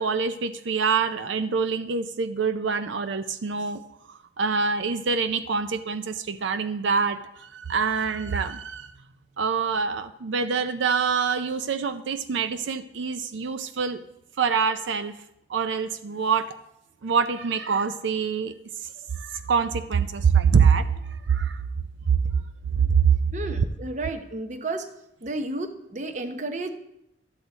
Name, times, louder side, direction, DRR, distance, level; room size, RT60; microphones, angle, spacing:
voice 1, 0.0-3.8 4.1-8.9 9.4-14.0 14.4-15.1 15.5-16.6 17.0-18.5 19.1-21.6 22.1-22.3 22.8-23.2, right 6 dB, 85° right, 10 dB, 0.5 m, -25 dB
voice 2, 23.3-24.9 25.2-26.7, right 2 dB, 40° right, 8 dB, 0.8 m, -32 dB
12.0 x 8.0 x 4.0 m, 0.81 s
head